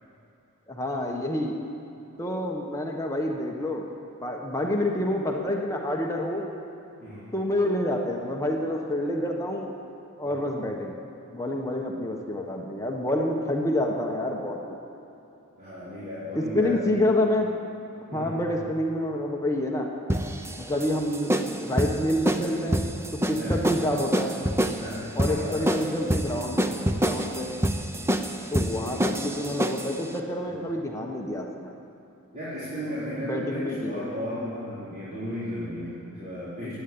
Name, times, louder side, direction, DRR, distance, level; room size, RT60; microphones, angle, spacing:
voice 1, 0.7-1.6 2.2-3.9 4.2-6.5 7.3-9.8 10.2-10.9 11.3-14.8 16.3-17.5 18.1-19.9 20.6-22.9 23.3-24.4 25.1-27.5 28.5-31.7 33.3-34.0 36.6-36.7, left 1 dB, 15° left, 0 dB, 1.2 m, -28 dB
voice 2, 7.0-7.3 10.2-10.3 15.6-16.8 18.1-18.6 23.3-23.6 24.8-25.7 28.8-29.0 30.5-30.6 32.3-36.7, equal, 35° right, -13 dB, 4.0 m, -35 dB
sound 1, 20.1-30.0, right 1 dB, 10° right, 0.6 m, -27 dB
17.0 x 9.4 x 8.6 m, 2.8 s
head